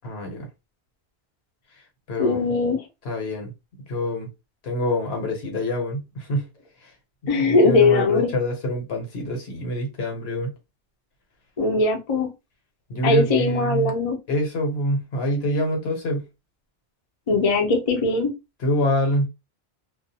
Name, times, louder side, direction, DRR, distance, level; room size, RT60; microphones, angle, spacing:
voice 1, 0.0-0.5 2.1-2.5 3.0-3.5 3.9-4.3 4.6-6.5 6.8-6.9 7.3-10.5 12.9-13.9 14.3-16.2 18.6-19.3, left 1 dB, 70° left, 1.2 m, -26 dB
voice 2, 2.2-2.8 7.3-8.3 11.6-12.3 13.0-14.2 17.3-18.3, left 3 dB, 40° left, 0.6 m, -20 dB
2.4 x 2.2 x 2.7 m
omnidirectional pair, 1.1 m